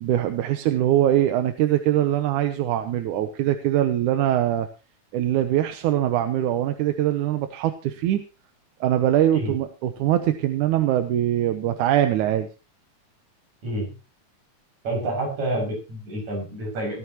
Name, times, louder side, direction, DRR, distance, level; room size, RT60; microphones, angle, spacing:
voice 1, 0.0-4.7 5.1-8.2 8.8-12.5, right 12 dB, 90° right, 8 dB, 2.4 m, -22 dB
voice 2, 14.8-17.0, right 1 dB, 65° right, -1 dB, 8.1 m, -28 dB
18.0 x 13.5 x 3.0 m, 0.31 s
omnidirectional pair, 3.5 m